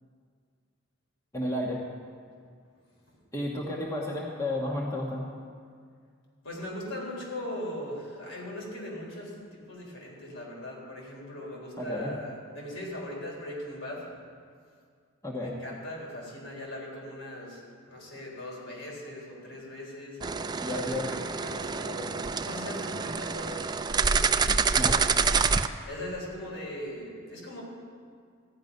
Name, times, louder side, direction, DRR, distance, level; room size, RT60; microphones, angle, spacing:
voice 1, 1.3-1.8 3.3-5.2 11.8-12.2 15.2-15.5 20.6-21.1 24.8-25.0, left 1 dB, 15° left, -3 dB, 1.3 m, -32 dB
voice 2, 6.4-14.1 15.4-17.6 17.9-20.2 20.7-23.7 25.6-27.6, left 1 dB, 75° left, -2 dB, 4.0 m, -39 dB
sound 1, 20.2-25.7, right 5 dB, 20° right, 0.4 m, -27 dB
14.5 x 11.0 x 5.3 m, 2.1 s
head